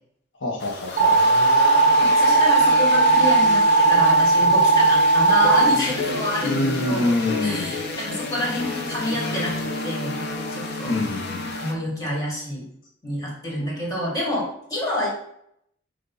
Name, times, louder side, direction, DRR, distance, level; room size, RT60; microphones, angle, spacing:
voice 1, 0.4-1.2 6.4-7.7 10.9-11.5, left 1 dB, 75° left, -1 dB, 1.2 m, -25 dB
sound 1, 0.6-11.7, left 2 dB, 60° left, 0.9 m, -32 dB
sound 2, 1.0-5.8, right 3 dB, 50° right, 0.9 m, -17 dB
voice 2, 2.0-7.1 7.4-9.5 9.8-10.2 10.5-11.0 11.6-12.6 13.0-15.1, left 1 dB, 20° left, -3 dB, 2.2 m, -28 dB
sound 3, 5.4-11.9, left 3 dB, 40° left, 1.2 m, -33 dB
6.7 x 2.8 x 5.5 m, 0.71 s
head